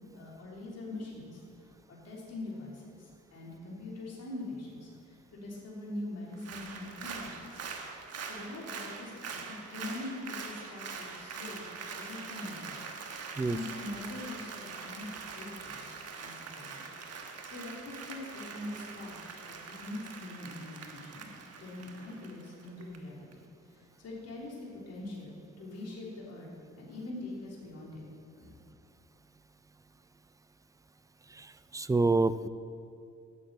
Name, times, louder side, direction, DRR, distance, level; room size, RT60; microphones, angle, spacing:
voice 1, 0.0-7.6 8.2-11.7 11.9-16.8 17.2-19.2 19.5-21.3 21.6-26.5 26.8-28.0 28.4-28.6, left 2 dB, 55° left, -5 dB, 3.3 m, -43 dB
Applause, 6.3-23.0 23.3-23.4, right 5 dB, 55° right, 1.3 m, -43 dB
voice 2, 31.3-32.5, right 3 dB, 10° right, 15 dB, 0.3 m, -28 dB
8.8 x 8.0 x 8.6 m, 2.5 s
cardioid pair, 90°, 30 cm